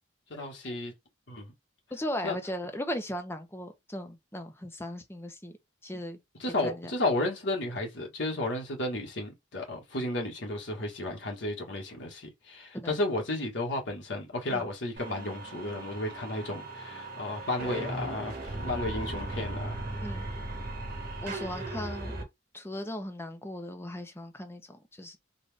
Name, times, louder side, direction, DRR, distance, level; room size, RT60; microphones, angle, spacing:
voice 1, 0.3-0.9 1.3-1.5 2.2-2.4 6.4-19.9, left 2 dB, 70° left, 1.4 m, -33 dB
voice 2, 1.9-5.6 5.8-6.9 12.7-12.9 14.5-14.6 20.0-20.3 21.2-22.1 22.5-25.2, left 1 dB, 10° left, 0.7 m, -37 dB
sound 1, 15.0-22.2, right 2 dB, 45° right, 1.4 m, -37 dB
4.0 x 2.5 x 3.4 m
head